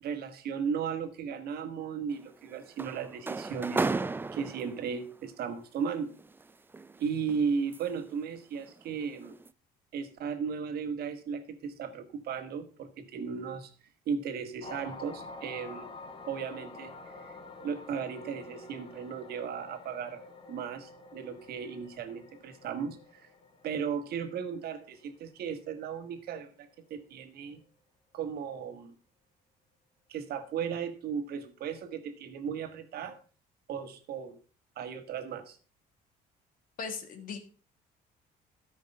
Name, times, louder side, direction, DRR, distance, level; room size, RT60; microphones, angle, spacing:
voice 1, 0.0-3.9 4.3-6.1 7.0-9.3 9.9-13.7 14.0-15.9 16.3-17.4 17.6-20.2 20.5-23.3 23.6-27.6 28.1-28.9 30.1-33.2 33.7-34.4 34.7-35.6, right 6 dB, 65° right, 8 dB, 1.6 m, -36 dB
sound 1, 2.1-5.1 6.2-8.1 8.5-8.8 9.2-9.5, right 3 dB, 10° right, 0.4 m, -35 dB
sound 2, 14.6-27.0 27.4-27.7, left 3 dB, 30° left, 1.7 m, -49 dB
voice 2, 36.8-37.4, left 5 dB, 55° left, 6 dB, 1.8 m, -38 dB
13.5 x 5.2 x 5.4 m, 0.38 s
cardioid pair, 110°, 17 cm